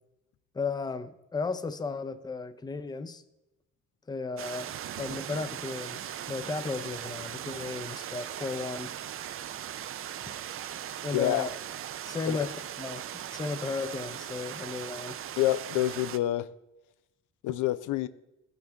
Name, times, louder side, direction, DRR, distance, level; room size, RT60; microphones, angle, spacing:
voice 1, 0.5-3.2 4.1-9.0 11.0-11.5 12.0-12.5 12.8-15.2, left 4 dB, 15° left, 0.5 m, -35 dB
sound 1, 4.4-16.2, right 10 dB, 45° right, 0.4 m, -39 dB
voice 2, 11.1-11.5 12.3-12.5 15.4-16.5 17.4-18.1, left 14 dB, 85° left, 0.5 m, -27 dB
14.0 x 6.0 x 3.4 m
cardioid pair, 90°, 30 cm